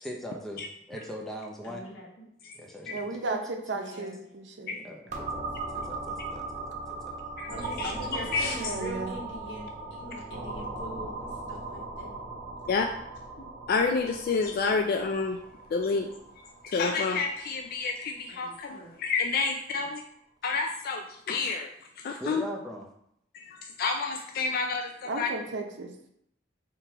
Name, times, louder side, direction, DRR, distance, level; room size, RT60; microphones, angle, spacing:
voice 1, 0.0-1.9 2.5-3.4 4.8-7.2 22.2-22.9, equal, ahead, -1 dB, 0.7 m, -41 dB
voice 2, 1.6-2.1 3.7-4.2 7.5-12.2 13.4-13.5 16.0-16.1 18.3-19.0, equal, 80° left, -3 dB, 1.4 m, -42 dB
voice 3, 2.9-4.8 8.6-9.2 25.0-25.9, right 3 dB, 70° right, 3 dB, 0.7 m, -34 dB
sound 1, 5.1-18.7, right 2 dB, 45° right, 1.0 m, -39 dB
voice 4, 7.4-7.9 8.3-8.6 12.7-12.9 13.7-15.4 15.7-16.1 16.6-20.0 20.4-21.7 22.0-22.4 23.3-25.3, left 4 dB, 55° left, 4 dB, 0.3 m, -29 dB
3.7 x 3.0 x 4.5 m, 0.73 s
head